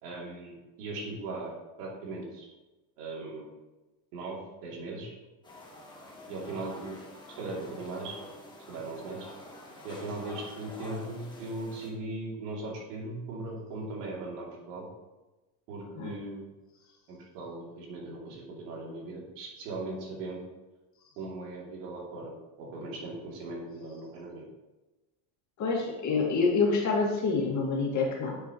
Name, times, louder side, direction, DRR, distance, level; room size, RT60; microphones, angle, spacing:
voice 1, 0.0-2.5 3.0-3.5 4.1-5.1 6.3-7.0 7.4-8.1 8.7-9.3 9.8-14.9 15.7-16.5 17.1-20.4 21.2-22.3 22.6-24.5, right 2 dB, 90° right, -2 dB, 2.9 m, -39 dB
sound 1, 5.4-11.9, left 1 dB, 10° left, 1.5 m, -48 dB
voice 2, 25.6-28.4, left 4 dB, 35° left, -1 dB, 2.1 m, -27 dB
9.7 x 6.9 x 3.1 m, 1.1 s
supercardioid pair, 135°, 47 cm